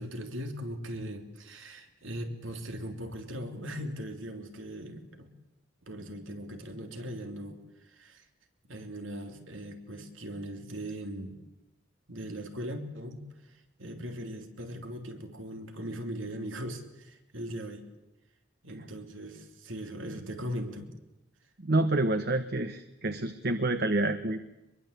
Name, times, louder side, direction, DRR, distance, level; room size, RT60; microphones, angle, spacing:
voice 1, 0.0-5.3 5.8-8.2 8.6-11.3 12.1-17.9 18.6-20.9, equal, 85° right, 5 dB, 3.4 m, -39 dB
voice 2, 21.6-24.4, right 2 dB, 55° right, 9 dB, 1.2 m, -28 dB
24.5 x 22.5 x 8.4 m, 0.95 s
head